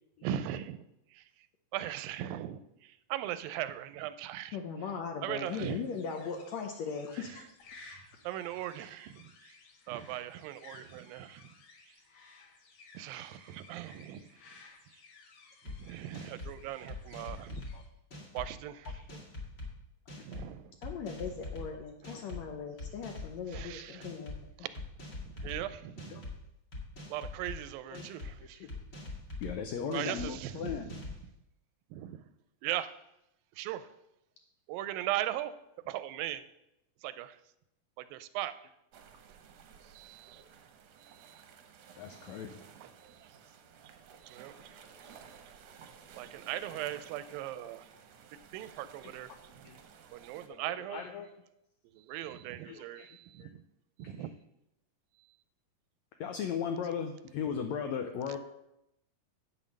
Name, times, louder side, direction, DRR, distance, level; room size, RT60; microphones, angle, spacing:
voice 1, 0.2-0.9 1.1-1.2 1.7-6.0 7.1-7.5 8.2-9.6 9.9-11.5 12.9-14.3 15.7-17.7 18.3-19.0 20.2-20.7 22.0-22.1 22.5-22.6 23.5-24.1 24.6-24.7 25.2-26.3 27.1-28.7 29.9-31.1 31.9-32.2 32.6-32.9 33.6-33.9 34.7-35.5 35.9-36.4 37.0-37.4 38.0-38.5 39.9-40.4 41.0-41.4 42.3-42.4 42.8-43.3 44.2-44.8 45.1-45.2 46.1-47.9 48.5-49.7 50.1-51.1 51.9-53.6 54.0-54.4, right 12 dB, 90° right, 13 dB, 2.4 m, -39 dB
voice 2, 4.5-7.4 20.8-24.3, left 6 dB, 70° left, 4 dB, 1.7 m, -39 dB
sound 1, 5.4-17.9, left 4 dB, 55° left, 2.1 m, -57 dB
sound 2, 15.7-15.8 16.1-16.5 16.9-17.7 18.1-18.5 18.9-19.7 20.1-20.4 20.8-21.7 22.0-22.4 22.8-23.6 24.0-24.4 24.8-25.6 26.0-26.3 26.7-27.6 27.9-28.3 28.7-29.5 29.9-30.3 30.7-31.2, left 2 dB, 35° left, 2.7 m, -42 dB
voice 3, 29.4-31.0 42.0-42.6 49.6-49.8 50.5-51.3 52.7-53.1 53.4-53.5 54.0-54.3 56.2-58.4, left 7 dB, 90° left, 5 dB, 1.5 m, -37 dB
sound 3, 38.9-50.5, right 7 dB, 70° right, 1.6 m, -55 dB
8.8 x 7.3 x 6.4 m, 0.85 s
omnidirectional pair, 4.0 m